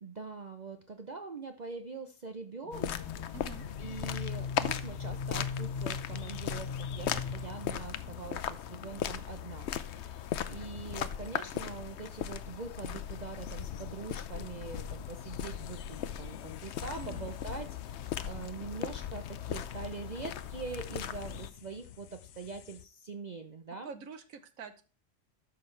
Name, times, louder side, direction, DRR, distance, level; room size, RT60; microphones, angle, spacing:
voice 1, 0.0-3.0 3.8-23.9, right 4 dB, 40° right, 6 dB, 0.8 m, -43 dB
sound 1, 2.6-8.2, left 6 dB, 35° left, 0.6 m, -39 dB
sound 2, 2.7-21.5, left 9 dB, 65° left, 0.8 m, -38 dB
voice 2, 3.3-3.7 17.0-17.3 23.8-24.8, right 5 dB, 85° right, 10 dB, 1.4 m, -46 dB
sound 3, 15.6-22.9, left 10 dB, 90° left, 1.0 m, -53 dB
13.0 x 6.1 x 3.3 m, 0.36 s
omnidirectional pair, 1.4 m